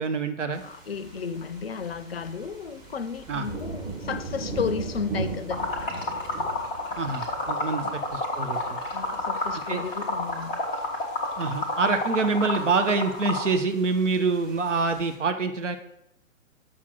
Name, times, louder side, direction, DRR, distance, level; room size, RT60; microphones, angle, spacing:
voice 1, 0.0-0.6 3.3-3.5 7.0-8.8 9.7-9.8 11.4-15.8, right 4 dB, 60° right, 1.0 m, -26 dB
sound 1, 0.5-15.2, right 3 dB, 10° right, 0.9 m, -39 dB
voice 2, 0.6-6.2 8.9-10.7, left 6 dB, 50° left, 0.6 m, -34 dB
Liquid, 5.5-13.5, left 2 dB, 5° left, 0.4 m, -29 dB
6.4 x 5.5 x 6.2 m
figure-of-eight pair, 125°, 40 cm